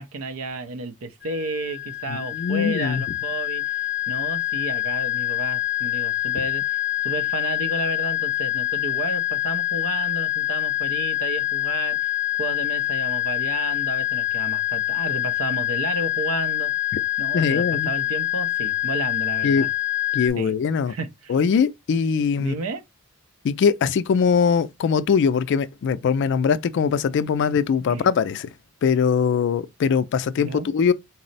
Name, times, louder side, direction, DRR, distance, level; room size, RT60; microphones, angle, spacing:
voice 1, 0.0-16.7 17.2-19.7 20.4-20.5 20.9-21.4 22.4-22.8 27.9-28.0 30.4-30.7, right 3 dB, 75° right, 0.5 m, -32 dB
sound 1, 1.2-20.3, left 15 dB, 5° right, 0.5 m, -25 dB
voice 2, 2.1-3.0 17.3-17.9 19.4-19.7 20.1-20.9 21.3-22.5 23.4-28.5 28.8-30.9, left 6 dB, 55° left, 0.3 m, -21 dB
4.1 x 2.0 x 3.9 m
head